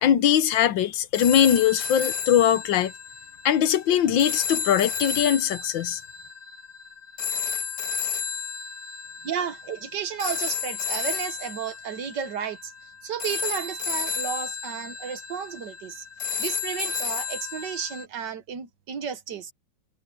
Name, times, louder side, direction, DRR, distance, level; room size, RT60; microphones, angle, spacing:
voice 1, 0.0-2.9 3.4-6.0, left 10 dB, 75° left, 1.6 m, -21 dB
sound 1, 1.1-18.0, left 6 dB, 60° left, 3.4 m, -32 dB
voice 2, 9.2-12.7 13.0-16.1 16.4-19.5, right 8 dB, 65° right, 1.7 m, -33 dB
omnidirectional pair, 2.1 m